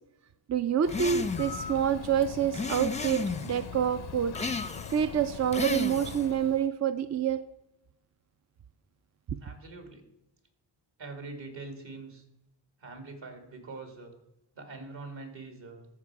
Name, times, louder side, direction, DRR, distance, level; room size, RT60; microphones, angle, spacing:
voice 1, 0.5-4.4 4.9-7.4, right 9 dB, 35° right, 10 dB, 0.5 m, -27 dB
Bird, 0.8-6.7, left 8 dB, 55° left, 0.6 m, -41 dB
sound 1, 0.9-1.6 2.5-3.6 4.3-5.1 5.5-6.3, left 4 dB, 15° left, 0.6 m, -34 dB
voice 2, 9.4-10.0 11.0-12.2 12.8-14.1 14.5-15.9, right 3 dB, 65° right, 5 dB, 2.3 m, -43 dB
13.5 x 4.7 x 4.8 m, 0.90 s
supercardioid pair, 45°, 49 cm